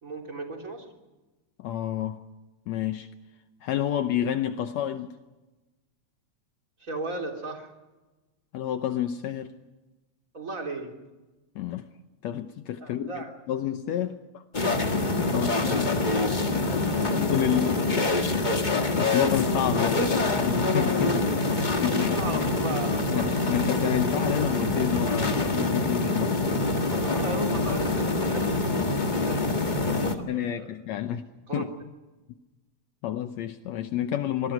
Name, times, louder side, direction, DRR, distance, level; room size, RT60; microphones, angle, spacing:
voice 1, 0.0-0.9 6.8-7.7 10.3-10.9 12.8-13.3 15.5-17.8 21.6-23.3 26.7-30.7 31.5-31.7, right 2 dB, 25° right, 2 dB, 3.7 m, -36 dB
voice 2, 1.6-2.2 2.7-3.1 3.6-5.1 8.5-9.5 11.6-11.9 12.2-14.4 15.3-15.8 16.7-16.8 17.2-18.5 18.9-22.2 23.1-26.7 30.3-31.2 31.5-31.7 33.0-34.5, left 10 dB, 75° left, 8 dB, 2.0 m, -29 dB
sound 1, 14.5-30.2, left 3 dB, 25° left, 1.1 m, -25 dB
25.5 x 21.0 x 6.1 m, 1.1 s
omnidirectional pair, 3.4 m